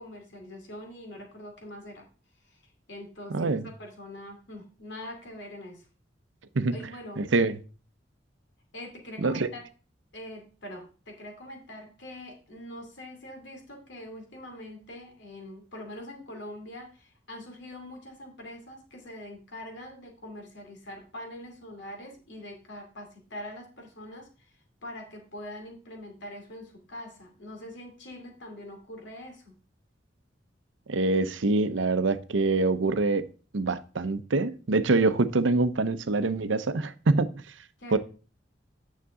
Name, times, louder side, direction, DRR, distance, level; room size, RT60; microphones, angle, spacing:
voice 1, 0.0-2.1 2.4-2.6 2.9-5.9 6.7-7.2 8.7-9.6 10.1-24.5 24.8-29.5 37.8-38.0, left 1 dB, 70° left, 2.5 m, -43 dB
voice 2, 3.3-3.7 6.5-6.8 7.2-7.6 9.2-9.5 30.9-33.3 33.5-37.3 37.9-38.0, right 3 dB, 85° right, 0.7 m, -25 dB
9.6 x 6.6 x 3.7 m
head